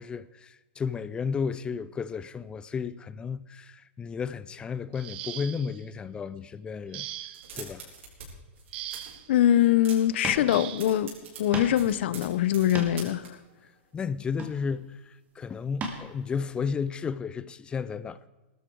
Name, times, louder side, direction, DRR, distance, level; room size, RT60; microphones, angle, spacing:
voice 1, 0.0-7.1 7.5-7.9 13.6-18.3, left 6 dB, 15° left, 0.4 m, -33 dB
sound 1, 4.9-5.8 6.9-7.6 8.7-9.3 10.5-11.0 12.2-12.3 12.8-13.0, right 13 dB, 55° right, 1.0 m, -40 dB
sound 2, 7.3-8.3 8.5-9.2 9.6-10.2 10.5-13.3, right 5 dB, 80° right, 6.9 m, -44 dB
voice 2, 9.3-11.1 11.4-13.3, left 11 dB, 65° left, 0.9 m, -23 dB
sound 3, 10.2-10.5 10.9-11.0 11.5-11.8 12.5-13.1 14.3-14.8 15.8-16.0 16.5-16.6, right 2 dB, 25° right, 2.6 m, -36 dB
17.5 x 13.5 x 4.7 m
supercardioid pair, 150°, 7 cm